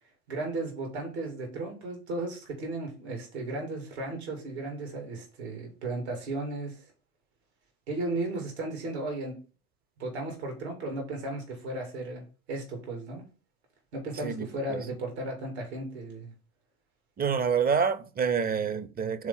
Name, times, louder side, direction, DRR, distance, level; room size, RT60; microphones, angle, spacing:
voice 1, 0.3-6.8 7.9-9.4 10.0-13.2 13.9-16.3, right 2 dB, 75° right, 2.7 m, -35 dB
voice 2, 14.2-14.8 17.2-19.3, right 6 dB, 25° right, 0.8 m, -27 dB
4.8 x 4.3 x 5.6 m
hypercardioid pair, 75°, 33 cm